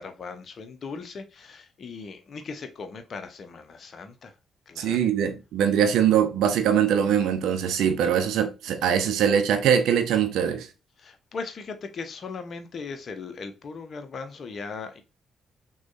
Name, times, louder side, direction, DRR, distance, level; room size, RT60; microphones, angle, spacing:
voice 1, 0.0-4.3 4.7-5.1 11.0-15.0, left 4 dB, 45° left, 0.7 m, -38 dB
voice 2, 4.8-10.7, right 8 dB, 60° right, 0.6 m, -22 dB
6.0 x 2.3 x 2.5 m
figure-of-eight pair, 40°, 0 cm